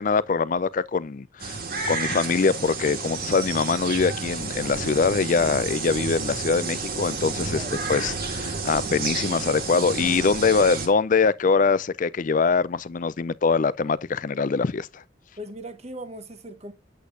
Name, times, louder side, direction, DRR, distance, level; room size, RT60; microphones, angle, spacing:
voice 1, 0.0-1.6 1.9-7.6 7.9-15.0, left 5 dB, 45° left, 0.4 m, -23 dB
sound 1, 1.4-10.9, right 4 dB, 50° right, 1.7 m, -31 dB
voice 2, 7.5-7.9 15.4-16.7, right 1 dB, 35° right, 1.1 m, -39 dB
8.3 x 8.0 x 2.5 m
head